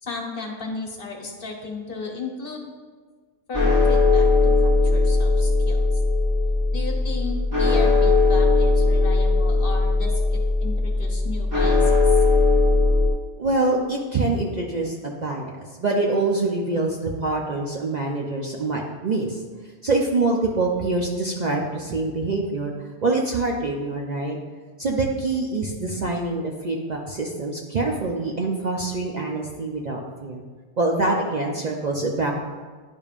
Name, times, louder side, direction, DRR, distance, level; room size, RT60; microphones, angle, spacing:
voice 1, 0.0-2.7 3.5-5.8 6.7-11.9, left 4 dB, 50° left, 1 dB, 1.1 m, -34 dB
sound 1, 3.5-13.1, left 3 dB, 15° right, 1.2 m, -19 dB
voice 2, 13.4-15.5 15.8-19.4 19.8-22.7 23.0-24.4 24.8-30.4 30.8-32.3, right 2 dB, 45° right, -1 dB, 0.6 m, -25 dB
10.5 x 5.2 x 2.4 m, 1.5 s
omnidirectional pair, 1.3 m